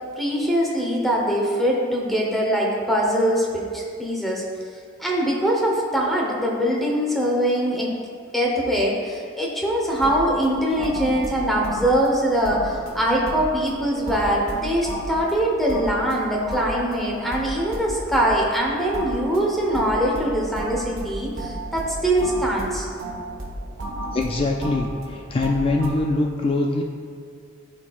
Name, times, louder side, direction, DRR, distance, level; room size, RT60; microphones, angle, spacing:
voice 1, 0.2-4.4 5.0-7.9 8.3-22.9, equal, ahead, -3 dB, 1.0 m, -22 dB
sound 1, 9.9-25.9, right 1 dB, 85° right, 1.1 m, -34 dB
voice 2, 24.1-26.8, left 2 dB, 30° left, 1 dB, 0.4 m, -23 dB
12.0 x 4.4 x 2.4 m, 2.2 s
head